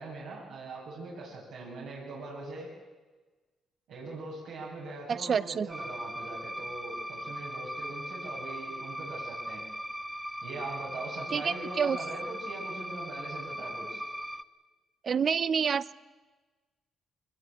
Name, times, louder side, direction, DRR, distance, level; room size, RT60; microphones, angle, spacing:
voice 1, 0.0-2.7 3.9-9.6 10.4-14.0, right 2 dB, 80° right, -5 dB, 8.0 m, -41 dB
voice 2, 5.1-5.7 11.3-12.0 15.0-15.9, right 6 dB, 50° right, 18 dB, 0.7 m, -28 dB
sound 1, 5.7-14.4, equal, 5° right, 1.0 m, -39 dB
22.5 x 21.5 x 8.6 m, 1.3 s
cardioid pair, 90°, 0 cm